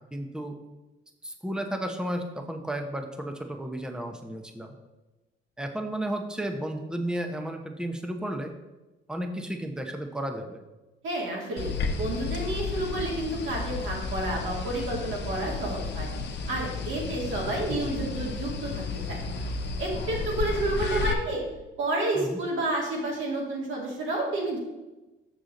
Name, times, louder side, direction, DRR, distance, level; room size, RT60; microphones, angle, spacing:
voice 1, 0.1-0.6 1.2-4.7 5.6-8.5 9.1-10.6 17.7-18.1 22.2-22.4, right 1 dB, 5° right, 4 dB, 0.9 m, -33 dB
voice 2, 11.0-16.1 16.5-19.2 19.8-21.4 21.8-24.6, right 2 dB, 75° right, -2 dB, 2.5 m, -30 dB
sound 1, 11.6-21.1, left 4 dB, 60° left, 0.9 m, -32 dB
6.7 x 6.7 x 3.8 m, 1.1 s
cardioid pair, 90°, 20 cm